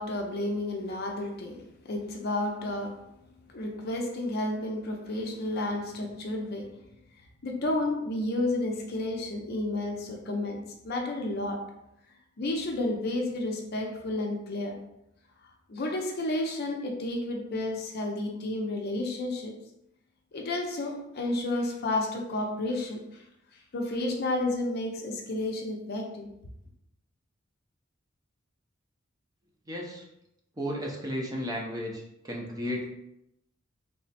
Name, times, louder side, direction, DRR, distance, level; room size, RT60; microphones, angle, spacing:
voice 1, 0.0-3.1 3.5-6.8 7.4-11.7 12.4-14.8 15.7-19.5 20.3-23.2 23.7-26.3, left 2 dB, 55° left, 2 dB, 0.5 m, -31 dB
voice 2, 29.7-30.0 30.6-31.9 32.2-32.9, equal, 20° right, -2 dB, 0.6 m, -33 dB
3.3 x 2.0 x 4.1 m, 0.81 s
head